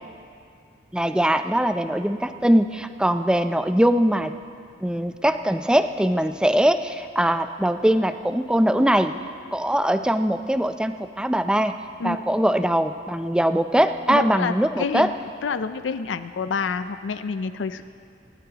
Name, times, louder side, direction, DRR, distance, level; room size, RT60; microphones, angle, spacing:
voice 1, 0.9-4.3 4.8-9.1 9.5-11.7 12.0-15.1, right 1 dB, 5° right, 9 dB, 0.4 m, -21 dB
voice 2, 14.1-15.1 15.4-17.8, left 5 dB, 90° left, 12 dB, 0.5 m, -28 dB
26.0 x 13.0 x 2.9 m, 2.3 s
head